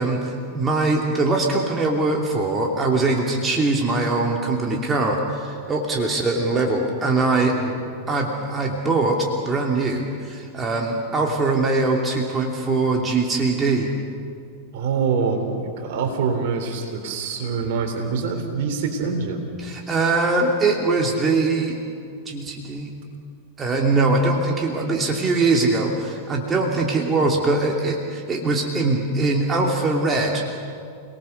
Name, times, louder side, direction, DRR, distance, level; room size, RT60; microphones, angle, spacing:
voice 1, 0.0-7.6 8.1-13.9 19.6-21.8 22.3-22.9 23.6-30.5, right 3 dB, 20° right, 0 dB, 2.9 m, -22 dB
voice 2, 14.7-19.5, right 5 dB, 55° right, 4 dB, 3.8 m, -25 dB
29.0 x 19.0 x 6.8 m, 2.3 s
figure-of-eight pair, 95°, 0 cm